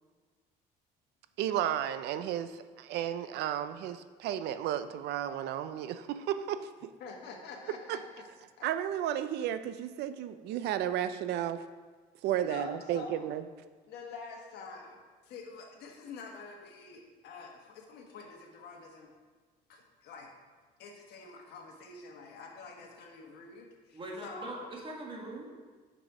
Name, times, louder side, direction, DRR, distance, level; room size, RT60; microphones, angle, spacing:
voice 1, 1.4-6.9 7.9-8.0 8.6-11.6 12.2-13.4, right 10 dB, 80° right, 12 dB, 0.5 m, -33 dB
voice 2, 7.0-8.2 8.6-8.7 12.4-13.2 13.9-15.0 15.2-19.1 19.7-20.3 20.8-24.7, left 4 dB, 75° left, 1 dB, 1.4 m, -47 dB
voice 3, 23.9-25.6, right 2 dB, 30° right, -1 dB, 1.8 m, -42 dB
6.6 x 6.1 x 4.9 m, 1.4 s
cardioid pair, 110°, 17 cm